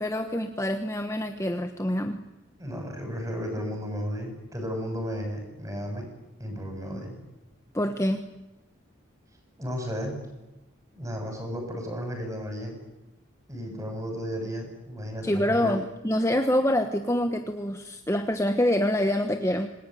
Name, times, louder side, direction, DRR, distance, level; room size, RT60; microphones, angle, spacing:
voice 1, 0.0-2.2 7.7-8.2 15.2-19.7, left 1 dB, 15° left, 6 dB, 1.2 m, -26 dB
voice 2, 2.6-6.1 6.4-7.2 9.6-10.2 10.9-12.8 13.5-15.8, equal, 15° right, 4 dB, 7.2 m, -34 dB
27.0 x 20.5 x 9.3 m, 1.0 s
head